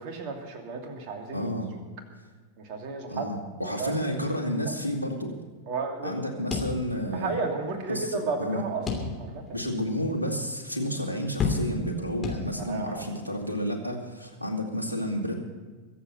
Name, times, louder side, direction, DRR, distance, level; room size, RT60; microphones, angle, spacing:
voice 1, 0.0-1.5 2.6-3.3 3.6-3.9 5.7-6.1 7.1-8.9 9.2-9.4 12.7-13.0, right 4 dB, 45° right, 3 dB, 2.8 m, -33 dB
voice 2, 1.3-1.7 3.1-5.3 6.0-7.4 7.9-8.6 9.5-15.3, equal, 85° right, 2 dB, 2.3 m, -31 dB
sound 1, 6.5-7.4 7.7-7.8 8.9-9.5 10.0-10.1 11.4-12.0 12.2-12.9, left 4 dB, 20° left, 3.0 m, -30 dB
23.5 x 8.1 x 5.8 m, 1.4 s
figure-of-eight pair, 90°, 0 cm